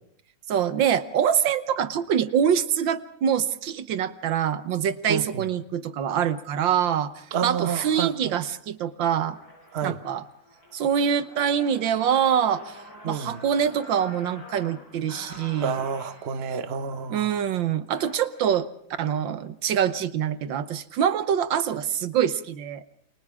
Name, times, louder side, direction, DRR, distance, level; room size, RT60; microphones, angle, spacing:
voice 1, 0.5-9.4 9.8-10.2 10.7-15.8 17.1-18.7 19.0-22.8, right 8 dB, 75° right, 1.7 m, -25 dB
voice 2, 5.1-5.4 7.3-8.1 9.7-10.0 13.0-13.4 15.6-17.3, right 7 dB, 40° right, 1.2 m, -29 dB
sound 1, 6.3-6.5 7.2-7.4 7.9-8.4 8.8-8.9 9.1-18.6, left 1 dB, 50° left, 8.3 m, -47 dB
29.0 x 25.0 x 3.6 m
omnidirectional pair, 2.1 m